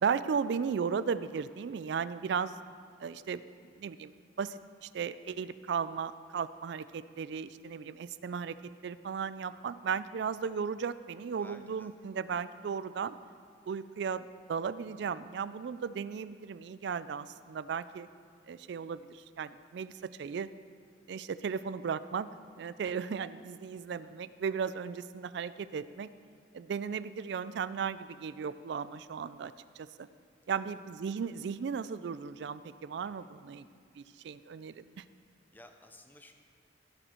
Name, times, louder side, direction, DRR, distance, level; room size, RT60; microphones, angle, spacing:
voice 1, 0.0-2.6 3.0-3.4 3.8-4.1 4.4-8.6 8.8-13.1 13.7-18.1 18.5-20.5 21.1-22.3 22.6-26.1 26.5-30.1 30.5-33.7 34.0-35.0, right 6 dB, 60° right, 15 dB, 0.3 m, -36 dB
voice 2, 11.4-11.9 23.0-23.2 23.9-24.0 30.5-30.6 33.0-33.3 35.5-36.3, left 1 dB, 10° left, 5 dB, 0.6 m, -56 dB
16.0 x 6.7 x 4.4 m, 2.2 s
head